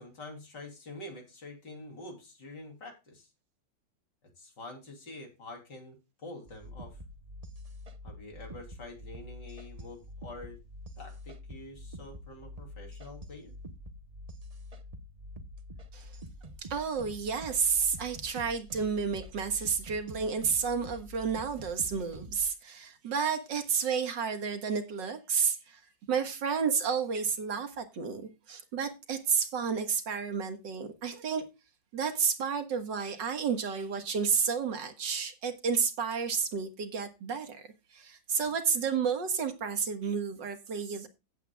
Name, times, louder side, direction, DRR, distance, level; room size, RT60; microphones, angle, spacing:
voice 1, 0.0-3.3 4.4-7.0 8.0-10.6 11.0-13.5, left 2 dB, 65° left, 3.8 m, -46 dB
sound 1, 6.5-22.4, equal, 30° right, 0.7 m, -46 dB
voice 2, 16.6-25.8 26.1-31.4 31.9-37.7 37.9-41.1, right 6 dB, 70° right, 2.2 m, -31 dB
16.0 x 8.4 x 2.3 m
omnidirectional pair, 2.0 m